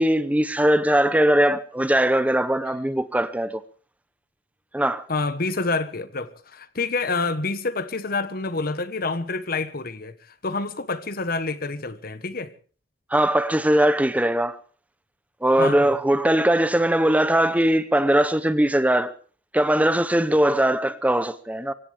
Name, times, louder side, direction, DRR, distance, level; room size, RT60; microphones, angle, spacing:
voice 1, 0.0-3.6 4.7-5.0 13.1-14.6 15.4-19.1 19.5-21.7, right 1 dB, 10° right, 0.7 m, -20 dB
voice 2, 5.1-10.1 10.4-12.5 15.6-16.0, left 3 dB, 55° left, 1.3 m, -27 dB
24.5 x 16.5 x 3.5 m
head